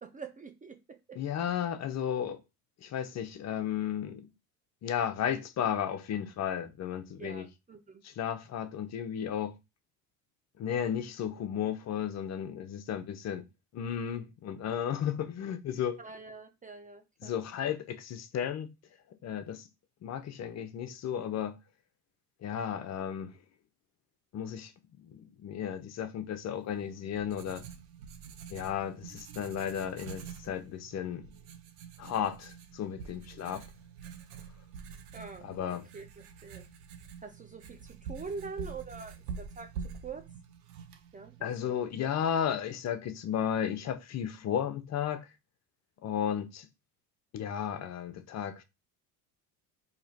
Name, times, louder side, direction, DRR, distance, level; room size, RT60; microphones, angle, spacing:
voice 1, 0.0-1.2 7.2-8.1 16.0-17.4 35.1-36.7 37.2-40.3 41.1-41.9, right 4 dB, 20° right, 0.4 m, -45 dB
voice 2, 1.2-2.4 2.8-4.3 4.8-7.4 8.0-9.5 10.6-13.4 13.7-16.0 17.2-18.7 19.2-19.7 20.0-21.6 22.4-23.3 24.3-24.7 25.0-27.6 28.5-31.3 32.0-33.7 35.4-35.8 41.4-45.3 46.0-46.7 47.3-48.6, left 9 dB, 35° left, 0.5 m, -34 dB
Writing, 26.7-41.5, right 6 dB, 75° right, 0.8 m, -46 dB
3.0 x 2.8 x 3.9 m
hypercardioid pair, 75°, 45 cm